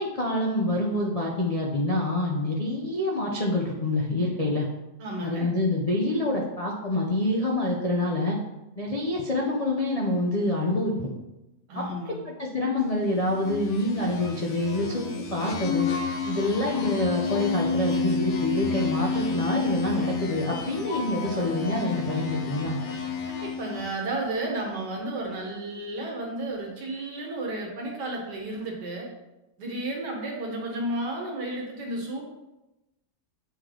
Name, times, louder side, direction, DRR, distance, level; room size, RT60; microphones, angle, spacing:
voice 1, 0.0-4.7 5.2-8.4 8.8-11.1 11.7-11.8 12.3-15.0 15.3-15.9 16.3-22.8, left 1 dB, 75° left, -2 dB, 0.3 m, -26 dB
voice 2, 5.0-5.5 11.7-12.2 23.3-29.1 29.6-32.2, right 1 dB, 75° right, -1 dB, 1.9 m, -32 dB
sound 1, 13.2-24.1, left 4 dB, 55° left, 0.9 m, -30 dB
8.1 x 3.3 x 3.8 m, 0.98 s
omnidirectional pair, 1.8 m